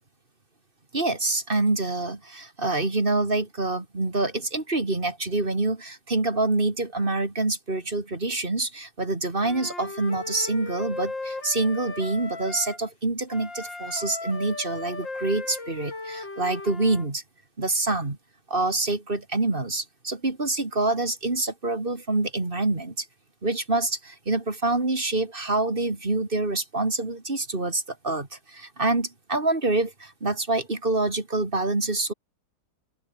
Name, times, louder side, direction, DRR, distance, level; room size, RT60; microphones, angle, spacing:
voice 1, 0.9-17.2 17.6-18.2 18.5-23.1 23.4-32.1, right 2 dB, 30° right, 3.0 m, -26 dB
Wind instrument woodwind instrument, 9.4-12.8 13.3-17.1, left 3 dB, 75° left, 6.5 m, -37 dB
open air
omnidirectional pair, 2.0 m